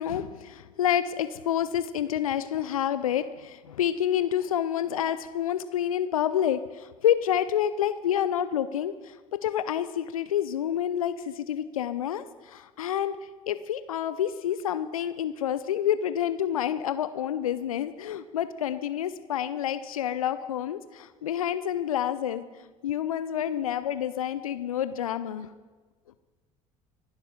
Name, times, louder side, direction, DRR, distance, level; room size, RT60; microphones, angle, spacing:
voice 1, 0.0-13.2 13.5-25.5, left 10 dB, 75° left, 13 dB, 0.6 m, -28 dB
26.0 x 11.5 x 3.7 m, 1.3 s
figure-of-eight pair, 65°, 18 cm